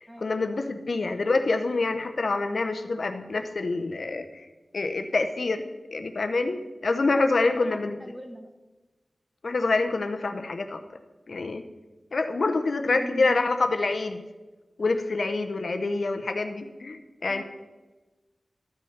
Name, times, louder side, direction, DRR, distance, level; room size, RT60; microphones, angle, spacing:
voice 1, 0.2-4.5 4.7-5.6 5.9-8.0 9.4-10.8 11.3-11.6 12.1-14.2 14.8-17.4, left 3 dB, 70° left, 7 dB, 0.7 m, -26 dB
voice 2, 7.3-8.5 12.9-13.2 17.3-17.4, equal, 10° right, 6 dB, 1.0 m, -40 dB
12.5 x 6.2 x 5.8 m, 1.2 s
wide cardioid pair, 80°, 0 cm